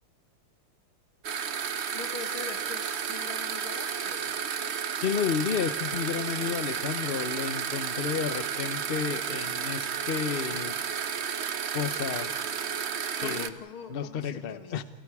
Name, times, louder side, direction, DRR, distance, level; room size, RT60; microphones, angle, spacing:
sound 1, 1.2-13.5, right 7 dB, 70° right, 0.6 m, -32 dB
voice 1, 1.9-4.4 13.2-14.8, left 5 dB, 75° left, 6 dB, 2.5 m, -42 dB
voice 2, 5.0-10.7 11.7-12.3 13.2-13.5 13.9-14.8, left 7 dB, 45° left, 12 dB, 0.7 m, -31 dB
28.5 x 28.5 x 4.9 m, 1.4 s
omnidirectional pair, 2.4 m